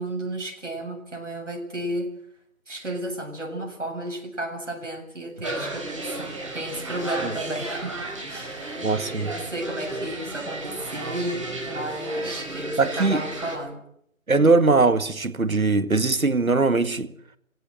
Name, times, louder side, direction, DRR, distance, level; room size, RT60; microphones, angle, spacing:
voice 1, 0.0-2.1 2.7-8.0 8.2-8.8 9.2-13.8, right 1 dB, 60° right, 7.6 m, -32 dB
sound 1, 5.4-13.5, right 2 dB, 25° right, 6.0 m, -34 dB
voice 2, 8.8-9.3 12.8-13.2 14.3-17.1, right 3 dB, 85° right, 2.0 m, -21 dB
24.5 x 16.5 x 8.0 m
figure-of-eight pair, 180°, 41 cm